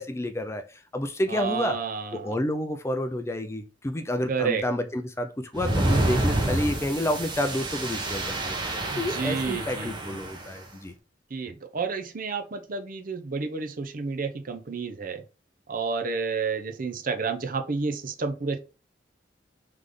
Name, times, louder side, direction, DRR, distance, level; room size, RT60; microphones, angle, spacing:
voice 1, 0.0-1.8 2.1-8.6 9.0-10.9, left 1 dB, 15° left, 0.4 m, -29 dB
voice 2, 1.3-2.4 4.3-4.7 8.9-10.4 11.3-15.2 15.7-18.6, right 5 dB, 50° right, 0.7 m, -30 dB
sound 1, 5.5-10.5, right 2 dB, 25° right, 0.9 m, -28 dB
3.6 x 3.2 x 3.8 m
head